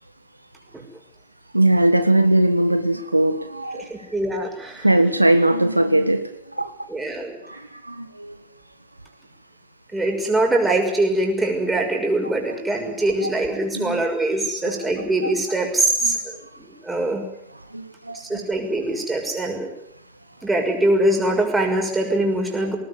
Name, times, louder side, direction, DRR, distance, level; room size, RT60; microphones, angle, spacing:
voice 1, 1.5-3.9 4.8-6.7 7.4-8.4 13.2-13.3 13.7-14.0 14.6-14.8 15.2-15.3 16.0-16.2 17.7-18.4, right 1 dB, 85° right, 10 dB, 1.5 m, -20 dB
voice 2, 3.7-4.9 6.9-7.4 9.9-17.2 18.1-19.7 20.4-22.8, right 1 dB, 10° right, 1 dB, 6.3 m, -23 dB
20.5 x 19.5 x 9.9 m, 0.74 s
figure-of-eight pair, 95°, 0 cm